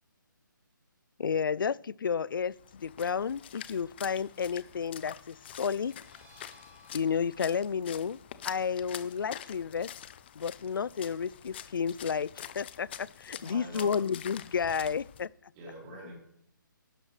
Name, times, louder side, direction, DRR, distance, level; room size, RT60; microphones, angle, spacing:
voice 1, 1.2-5.9 6.9-8.2 8.4-9.9 10.4-15.3, left 6 dB, 80° left, 0.4 m, -31 dB
Splash splatter, 2.5-15.3, left 10 dB, 30° left, 0.5 m, -46 dB
sound 1, 5.4-10.8, left 1 dB, 40° right, 4.8 m, -62 dB
voice 2, 13.4-14.0 15.5-16.2, right 1 dB, 25° right, 3.9 m, -45 dB
12.0 x 12.0 x 3.3 m
hypercardioid pair, 160°, 11 cm